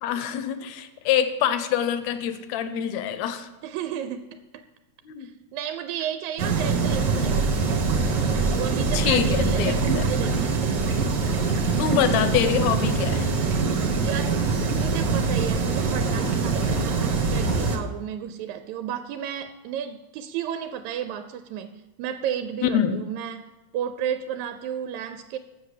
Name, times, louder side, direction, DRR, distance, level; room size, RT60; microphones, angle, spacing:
voice 1, 0.0-3.5 5.1-5.3 8.9-10.1 11.8-13.3 22.6-23.0, left 9 dB, 80° left, 11 dB, 1.8 m, -25 dB
voice 2, 3.6-4.6 5.2-7.8 8.5-10.6 14.0-14.5 14.8-23.5 23.7-25.4, right 9 dB, 80° right, 10 dB, 1.8 m, -33 dB
sound 1, 6.4-17.8, right 4 dB, 55° right, 1.4 m, -23 dB
7.3 x 7.0 x 8.1 m, 1.1 s
omnidirectional pair, 3.4 m